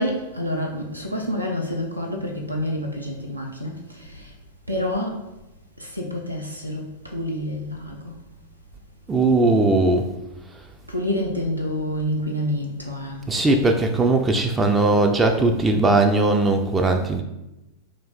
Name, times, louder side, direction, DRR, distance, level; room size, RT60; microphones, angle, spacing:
voice 1, 0.0-4.3 4.7-5.2 5.8-8.2 10.9-13.3, left 1 dB, 85° right, 1 dB, 0.4 m, -28 dB
voice 2, 9.1-10.1 13.3-17.2, right 2 dB, 15° right, 4 dB, 0.3 m, -19 dB
3.2 x 2.4 x 3.8 m, 0.93 s
figure-of-eight pair, 90°, 0 cm